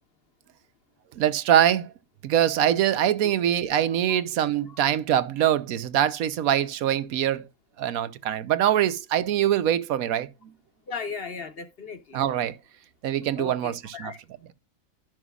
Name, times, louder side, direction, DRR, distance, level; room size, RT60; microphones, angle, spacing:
voice 1, 1.2-1.9 2.2-7.5 7.8-10.3 12.1-12.5 13.0-14.1, right 10 dB, 80° right, 1.1 m, -23 dB
voice 2, 10.9-12.2 13.4-14.2, left 5 dB, 45° left, 1.1 m, -37 dB
12.5 x 6.0 x 2.4 m
omnidirectional pair, 1.5 m